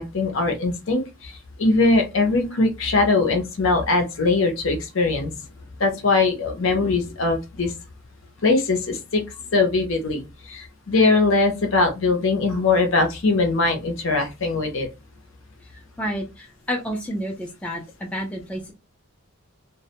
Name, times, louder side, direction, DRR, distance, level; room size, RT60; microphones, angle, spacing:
voice 1, 0.0-5.3 5.8-7.7 8.4-9.2 9.5-14.9, left 3 dB, 65° left, 4 dB, 0.6 m, -21 dB
voice 2, 15.7-18.7, equal, 5° left, -1 dB, 0.4 m, -30 dB
2.1 x 2.1 x 2.8 m, 0.25 s
head